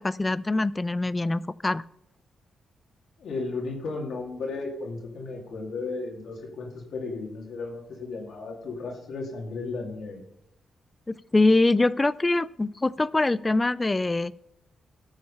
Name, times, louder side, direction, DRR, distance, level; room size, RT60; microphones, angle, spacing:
voice 1, 0.0-1.8 11.1-14.3, left 2 dB, 20° left, 19 dB, 0.4 m, -24 dB
voice 2, 3.2-10.2, left 3 dB, 70° left, -1 dB, 2.6 m, -34 dB
13.5 x 6.4 x 5.7 m, 0.78 s
cardioid pair, 85°, 0 cm